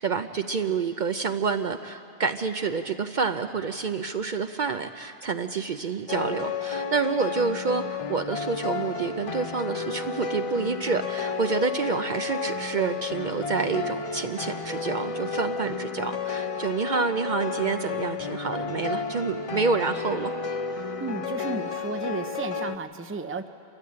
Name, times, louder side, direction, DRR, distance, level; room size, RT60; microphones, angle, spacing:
voice 1, 0.0-20.3, right 5 dB, 55° right, 8 dB, 0.7 m, -28 dB
sound 1, 6.1-22.8, left 5 dB, 40° left, 0.6 m, -32 dB
voice 2, 21.0-23.5, right 3 dB, 15° right, 8 dB, 0.6 m, -33 dB
28.0 x 13.5 x 8.6 m, 2.7 s
omnidirectional pair, 1.1 m